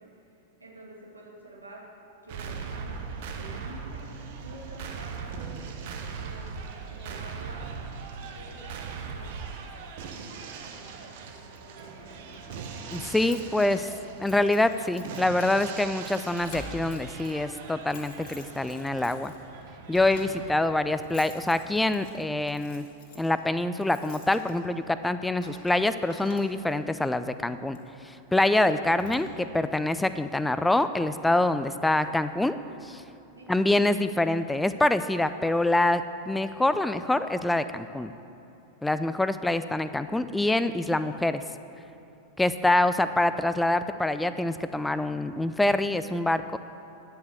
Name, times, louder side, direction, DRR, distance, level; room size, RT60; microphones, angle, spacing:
voice 1, 0.0-2.0 2.2-5.7 6.1-7.8 8.2-9.4 10.3-12.3 33.4-33.5 39.4-39.5, right 1 dB, 80° right, -2 dB, 2.0 m, -48 dB
sound 1, 2.3-22.3, right 5 dB, 50° right, 1.1 m, -40 dB
Keys jangling, 11.5-26.9 27.7-27.9 28.4-28.5 28.7-29.7, left 2 dB, 45° left, 2.1 m, -48 dB
voice 2, 12.9-13.9 14.2-19.3 19.9-22.9 23.2-27.8 28.0-32.6 32.8-33.0 33.5-38.1 38.8-41.4 42.4-46.6, left 2 dB, 5° left, 12 dB, 0.4 m, -25 dB
10.5 x 6.8 x 7.8 m, 3.0 s
figure-of-eight pair, 90°, 0 cm